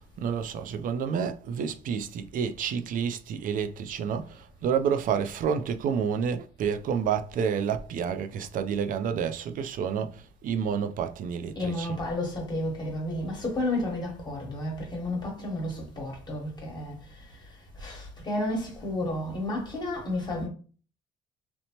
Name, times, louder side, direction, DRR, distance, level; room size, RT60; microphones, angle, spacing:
voice 1, 0.2-12.0, right 7 dB, 55° right, 0.4 m, -29 dB
voice 2, 11.5-17.2 17.8-20.5, left 1 dB, 25° left, 1.2 m, -32 dB
2.8 x 2.0 x 2.9 m
cardioid pair, 110°, 17 cm